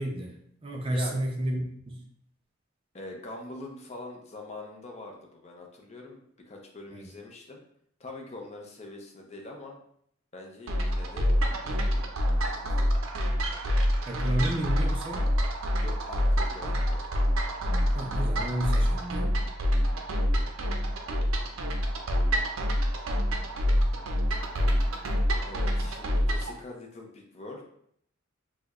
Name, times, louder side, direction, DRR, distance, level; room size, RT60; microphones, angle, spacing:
voice 1, 0.0-2.0 6.9-7.1 14.1-15.3 17.6-19.4, right 1 dB, 25° right, 0 dB, 0.5 m, -32 dB
voice 2, 0.9-1.2 2.9-7.6 8.0-9.8 10.3-11.3 11.6-12.0 12.4-13.1 15.8-17.0 20.4-20.6 25.5-27.6, left 2 dB, 30° left, 1 dB, 0.5 m, -43 dB
sound 1, 10.7-26.5, equal, 75° right, 0.5 m, -26 dB
4.5 x 2.1 x 2.4 m, 0.67 s
head